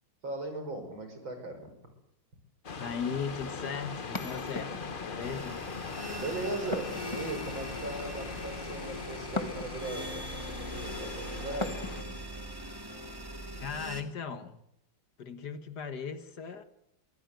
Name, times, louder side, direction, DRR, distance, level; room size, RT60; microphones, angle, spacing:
voice 1, 0.2-1.7 6.2-12.0, right 2 dB, 75° right, 6.2 m, -38 dB
sound 1, 2.6-12.0, left 5 dB, 35° left, 1.0 m, -41 dB
voice 2, 2.8-5.7 13.6-14.6 15.2-16.6, left 6 dB, 55° left, 1.8 m, -38 dB
sound 2, 4.1-5.1 6.7-7.7 9.4-10.0 11.6-12.2, left 2 dB, 15° left, 1.8 m, -39 dB
sound 3, 5.2-14.0, equal, 10° right, 2.4 m, -41 dB
23.5 x 15.5 x 9.2 m
omnidirectional pair, 2.1 m